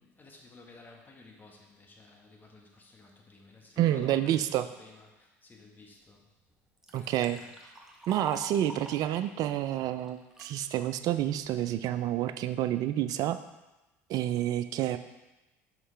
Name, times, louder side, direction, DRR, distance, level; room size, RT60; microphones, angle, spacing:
voice 1, 0.0-4.5 4.8-6.3 6.9-7.5, left 3 dB, 25° left, 1 dB, 1.3 m, -54 dB
voice 2, 3.8-4.7 6.9-7.4 8.1-13.4 14.1-15.0, right 12 dB, 55° right, 11 dB, 0.4 m, -29 dB
Liquid, 6.0-6.1 6.5-10.5 11.1-11.5, right 1 dB, 5° right, 1.1 m, -47 dB
5.6 x 5.4 x 3.3 m, 1.0 s
hypercardioid pair, 75°, 7 cm